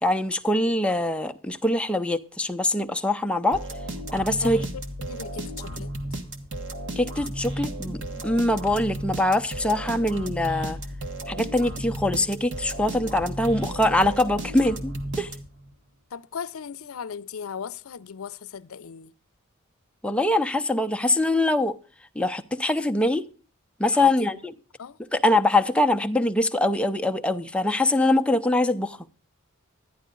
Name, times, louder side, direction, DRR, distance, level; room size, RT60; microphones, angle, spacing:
voice 1, 0.0-3.6 4.1-4.6 7.0-10.8 11.3-15.3 20.0-21.8 22.2-23.3 23.8-24.5 25.1-29.0, left 1 dB, 5° left, 0.5 m, -23 dB
sound 1, 3.5-15.7, right 1 dB, 60° right, 1.4 m, -34 dB
voice 2, 4.4-5.9 16.1-19.1 23.9-24.3 24.8-25.0, left 6 dB, 85° left, 0.5 m, -37 dB
11.5 x 10.5 x 3.8 m
head